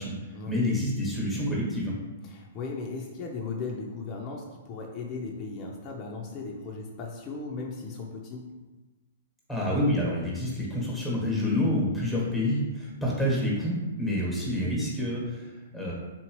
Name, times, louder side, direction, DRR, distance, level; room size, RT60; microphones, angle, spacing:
voice 1, 0.5-1.9 9.5-15.9, left 1 dB, ahead, -4 dB, 1.2 m, -28 dB
voice 2, 2.2-8.5, left 4 dB, 30° left, -1 dB, 0.5 m, -37 dB
3.7 x 2.8 x 3.0 m, 1.2 s
hypercardioid pair, 135°, 0 cm